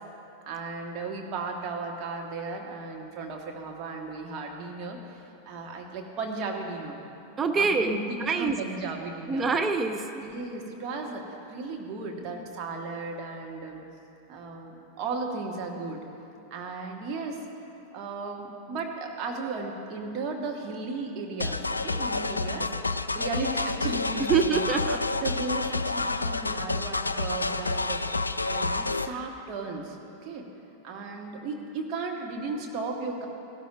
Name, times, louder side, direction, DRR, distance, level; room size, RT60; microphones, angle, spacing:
voice 1, 0.4-7.0 7.5-9.5 10.2-13.8 14.3-16.0 16.5-17.4 17.9-22.7 23.1-24.6 25.2-28.0 28.4-30.0 30.2-30.5 30.8-33.3, right 3 dB, 35° right, 1 dB, 1.5 m, -35 dB
voice 2, 7.4-8.6 9.3-10.2 24.3-25.0, right 5 dB, 20° right, 7 dB, 0.5 m, -25 dB
sound 1, 21.4-29.1, left 3 dB, 80° left, 0.3 m, -29 dB
17.0 x 12.5 x 2.6 m, 2.8 s
figure-of-eight pair, 90°, 0 cm